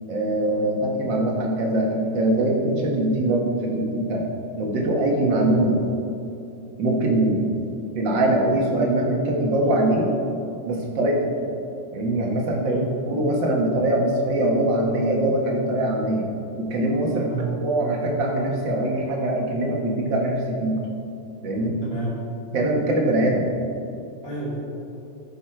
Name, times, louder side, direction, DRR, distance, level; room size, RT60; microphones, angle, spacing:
voice 1, 0.1-4.3 4.6-5.8 6.8-7.5 8.0-10.1 10.7-11.3 11.9-16.3 16.5-17.3 17.6-20.8 21.4-21.8 22.5-23.5, right 1 dB, 60° right, -1 dB, 2.1 m, -22 dB
voice 2, 12.6-12.9 17.1-17.5 21.8-22.2 24.2-24.5, right 3 dB, 50° left, -7 dB, 3.4 m, -30 dB
14.0 x 6.4 x 4.6 m, 2.7 s
omnidirectional pair, 2.4 m